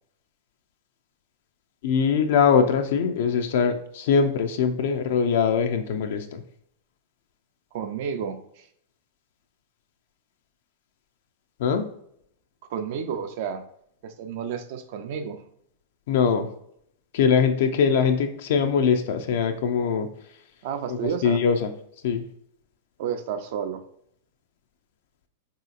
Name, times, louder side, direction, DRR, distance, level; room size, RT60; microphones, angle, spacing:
voice 1, 1.8-6.4 11.6-11.8 16.1-16.5 17.1-20.1 20.9-21.7 22.0-22.2, left 6 dB, 70° left, 6 dB, 0.3 m, -22 dB
voice 2, 7.7-8.7 12.7-13.6 14.0-15.4 20.6-21.4 23.0-23.9, right 7 dB, 60° right, 7 dB, 0.4 m, -31 dB
3.0 x 2.8 x 2.4 m, 0.71 s
hypercardioid pair, 120°, 0 cm